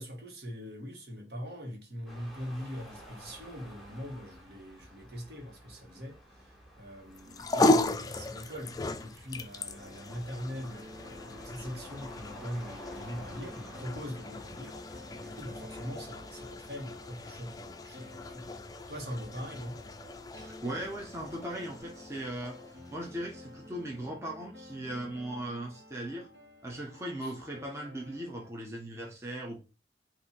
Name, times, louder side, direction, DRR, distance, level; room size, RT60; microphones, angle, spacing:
voice 1, 0.0-6.2 6.8-10.9 11.3-14.8 15.1-18.5 18.9-19.8 27.2-27.3, equal, 65° right, 1.5 m, -41 dB
sound 1, 2.1-16.6, equal, ahead, 1.4 m, -53 dB
sound 2, 7.1-23.6, left 2 dB, 20° left, 0.3 m, -36 dB
sound 3, 9.8-28.5, left 1 dB, 85° right, 1.3 m, -52 dB
voice 2, 20.3-22.6 22.9-26.3 26.6-29.6, right 1 dB, 15° right, 0.8 m, -38 dB
4.4 x 2.7 x 4.2 m
head